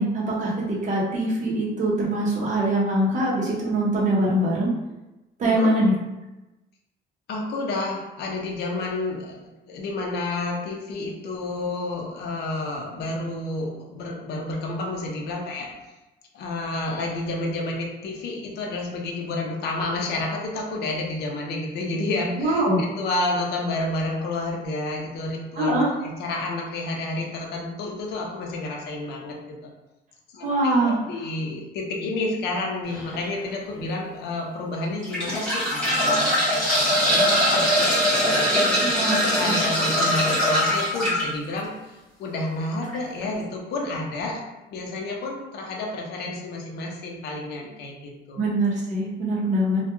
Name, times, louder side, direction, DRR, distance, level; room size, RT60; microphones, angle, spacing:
voice 1, 0.0-4.7 5.4-5.9 22.4-22.8 25.6-26.0 30.4-31.0 38.8-39.5 48.4-49.8, right 1 dB, 40° right, -5 dB, 0.7 m, -23 dB
voice 2, 7.3-9.4 9.7-15.9 16.3-29.7 30.3-30.5 30.8-38.6 39.3-44.4 44.7-48.4 49.7-49.8, left 2 dB, 60° left, 0 dB, 0.5 m, -30 dB
sound 1, 32.9-33.2 33.8-33.9 34.8-41.2 42.8-43.0 43.2-43.3, equal, 5° left, 0.8 m, -21 dB
2.2 x 2.1 x 2.9 m, 1.0 s
cardioid pair, 165°, 19 cm